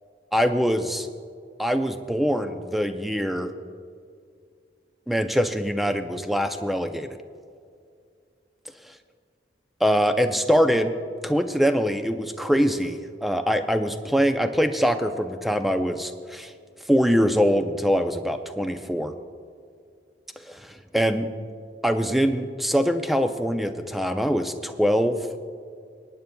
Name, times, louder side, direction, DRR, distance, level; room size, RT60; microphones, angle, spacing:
voice 1, 0.3-1.1 1.6-3.5 5.1-7.2 9.8-10.9 11.2-16.5 16.9-19.1 20.4-21.3 21.8-25.2, equal, ahead, 7 dB, 0.4 m, -23 dB
25.5 x 9.3 x 2.3 m, 2.3 s
head